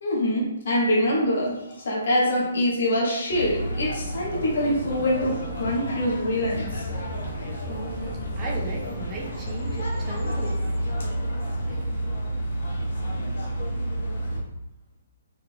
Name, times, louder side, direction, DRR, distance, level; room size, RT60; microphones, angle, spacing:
voice 1, 0.0-6.8, left 1 dB, 60° left, -4 dB, 1.1 m, -24 dB
sound 1, 3.3-14.4, equal, 80° left, 0.9 m, -30 dB
sound 2, 4.3-4.5 5.2-5.8 6.9-7.1 8.0-8.2 8.5-8.7 9.7-9.9, left 2 dB, 45° left, 1.3 m, -43 dB
voice 2, 7.7-10.6 11.7-11.8, right 3 dB, 20° right, -2 dB, 0.5 m, -36 dB
3.7 x 3.5 x 2.2 m, 0.89 s
hypercardioid pair, 165°, 0 cm